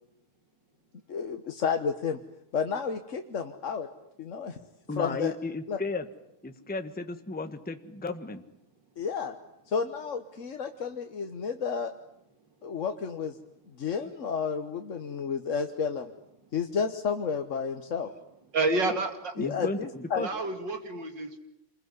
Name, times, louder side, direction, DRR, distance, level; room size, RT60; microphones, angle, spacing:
voice 1, 1.1-2.2 2.5-3.9 4.2-4.6 5.0-5.3 5.7-5.8 9.0-9.3 9.7-11.9 12.6-13.4 13.8-16.1 16.5-18.1 19.4-20.3, left 6 dB, 40° left, 6 dB, 1.3 m, -31 dB
voice 2, 4.9-6.1 6.4-8.4 19.4-20.3, left 3 dB, 5° left, 8 dB, 1.1 m, -34 dB
voice 3, 18.5-19.3 20.2-21.4, right 2 dB, 55° right, 7 dB, 3.2 m, -29 dB
28.0 x 21.5 x 9.6 m, 0.79 s
omnidirectional pair, 2.4 m